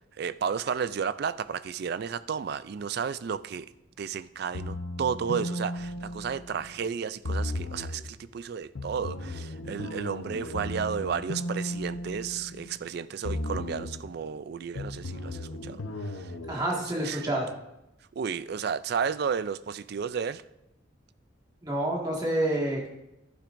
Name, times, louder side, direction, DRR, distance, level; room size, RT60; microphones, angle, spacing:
voice 1, 0.2-3.7 4.0-16.3 16.7-17.2 18.2-20.4, right 6 dB, 50° right, 0.3 m, -33 dB
sound 1, 4.5-6.8 7.2-8.1 8.8-12.9 13.2-14.1 14.8-16.5, left 1 dB, 85° left, 0.7 m, -35 dB
voice 2, 16.5-17.5 21.6-22.9, right 1 dB, 20° right, 1.8 m, -28 dB
11.5 x 10.0 x 2.6 m
head